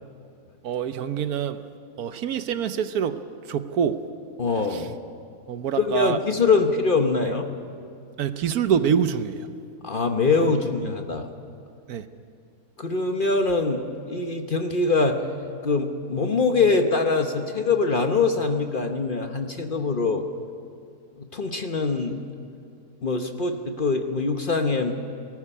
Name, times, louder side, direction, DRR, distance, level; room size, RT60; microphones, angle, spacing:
voice 1, 0.6-1.6 2.0-3.2 3.5-4.0 4.7-4.9 5.5-6.2 8.2-9.5 11.9-12.1, right 8 dB, 75° right, 11 dB, 1.2 m, -25 dB
voice 2, 4.4-5.0 5.8-7.4 9.8-11.3 12.8-15.2 15.6-20.2 21.3-22.2 23.0-24.9, left 4 dB, 40° left, 5 dB, 1.0 m, -23 dB
18.5 x 14.5 x 10.0 m, 2.4 s
omnidirectional pair, 1.7 m